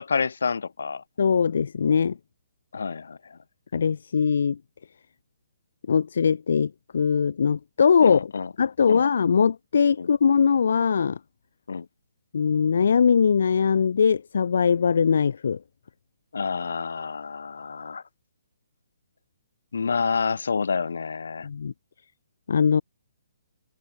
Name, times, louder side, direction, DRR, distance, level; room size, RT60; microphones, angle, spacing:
voice 1, 0.0-1.0 2.7-3.4 8.0-8.5 8.9-9.1 10.0-10.1 11.7-11.9 16.3-18.0 19.7-21.5, left 5 dB, 85° left, 2.1 m, -28 dB
voice 2, 1.2-2.2 3.7-4.6 5.9-8.3 8.6-11.2 12.3-15.6 21.4-21.7 22.5-22.8, left 6 dB, 65° left, 1.4 m, -21 dB
hypercardioid pair, 165°, 0 cm